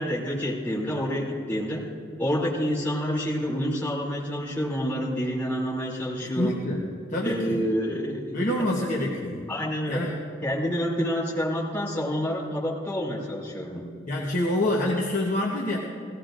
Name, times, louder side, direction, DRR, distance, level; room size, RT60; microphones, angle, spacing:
voice 1, 0.0-1.8 2.2-6.5 7.2-8.4 9.5-10.1 10.4-13.9, equal, 10° left, -6 dB, 2.8 m, -28 dB
voice 2, 6.2-6.8 7.1-7.6 8.3-9.4 9.9-10.2 14.1-15.8, left 1 dB, 40° left, -3 dB, 1.0 m, -26 dB
17.0 x 16.5 x 2.5 m, 2.2 s
head